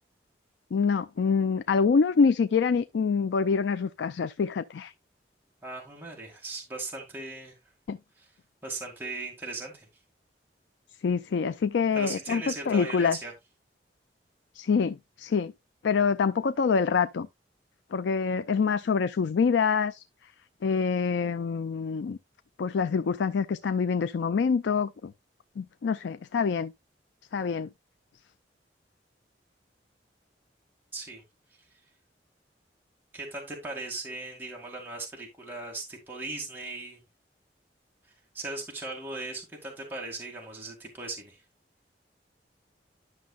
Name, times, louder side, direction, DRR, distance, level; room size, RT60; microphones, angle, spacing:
voice 1, 0.7-4.9 7.9-8.0 11.0-13.2 14.5-15.5 15.8-17.3 17.9-20.0 20.6-22.2 22.6-25.1 25.6-26.7 27.3-27.7, left 5 dB, 80° left, 0.4 m, -26 dB
voice 2, 5.6-7.6 8.2-8.3 8.6-9.9 11.9-13.3 30.9-31.2 33.1-37.0 38.3-41.4, right 2 dB, 10° right, 2.0 m, -38 dB
11.5 x 6.3 x 2.3 m
head